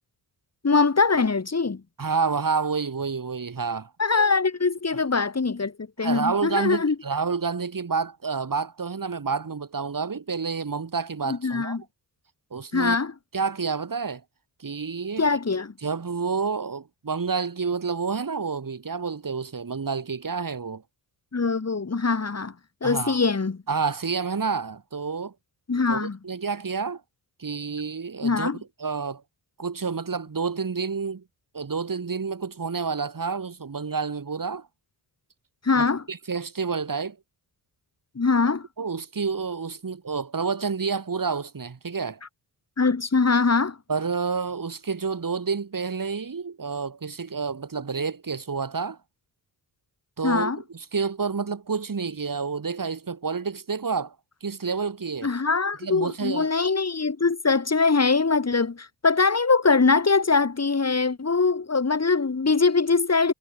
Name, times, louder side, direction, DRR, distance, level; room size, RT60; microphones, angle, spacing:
voice 1, 0.6-1.8 4.0-6.9 11.3-11.8 12.7-13.1 15.2-15.7 21.3-22.5 22.8-23.6 25.7-26.2 28.2-28.6 35.6-36.0 38.1-38.7 42.8-43.8 50.2-50.6 55.2-63.3, left 4 dB, 35° left, 4.4 m, -22 dB
voice 2, 2.0-3.9 6.0-11.8 12.5-13.0 13.3-14.2 14.6-15.3 15.8-20.8 22.8-23.2 23.7-25.3 25.9-27.0 27.4-28.5 28.8-29.2 29.6-31.2 31.5-34.7 35.8-37.2 38.8-42.2 43.9-49.0 50.2-54.2 54.4-55.3 55.8-56.5, right 5 dB, 45° right, 7.6 m, -29 dB
cardioid pair, 55°, 44 cm